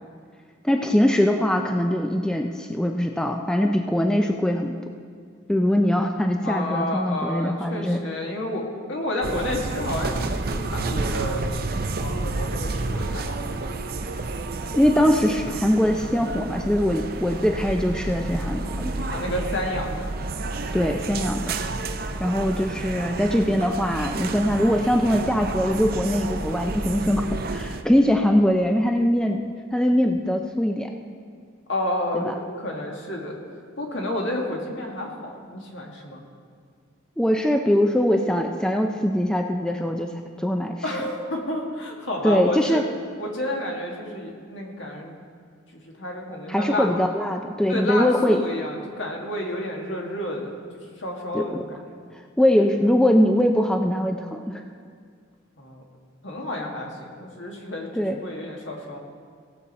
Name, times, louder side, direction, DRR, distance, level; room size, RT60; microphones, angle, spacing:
voice 1, 0.6-4.8 5.5-8.0 14.8-18.9 20.7-21.6 22.2-27.2 27.5-29.4 29.7-30.9 32.1-32.3 37.2-40.1 40.4-40.8 42.2-42.8 46.5-48.4 51.3-51.6 52.4-54.6 57.9-58.2, equal, 5° left, 3 dB, 0.4 m, -22 dB
voice 2, 6.4-13.3 19.1-20.1 31.7-33.4 33.8-36.2 40.8-42.8 43.2-45.1 45.7-46.9 47.7-50.6 51.0-52.0 55.6-55.8 56.2-59.0, left 1 dB, 70° left, 0 dB, 1.8 m, -30 dB
sound 1, 9.2-27.8, right 3 dB, 50° right, 0.6 m, -30 dB
17.5 x 7.0 x 4.2 m, 2.1 s
head